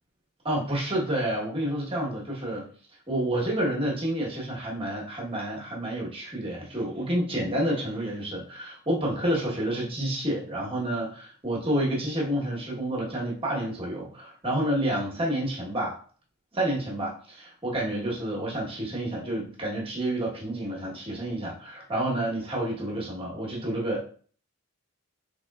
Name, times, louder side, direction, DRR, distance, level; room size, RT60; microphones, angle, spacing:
voice 1, 0.4-2.7 3.1-15.9 16.5-24.1, right 1 dB, 25° right, -3 dB, 1.1 m, -29 dB
3.7 x 3.5 x 2.3 m, 0.44 s
head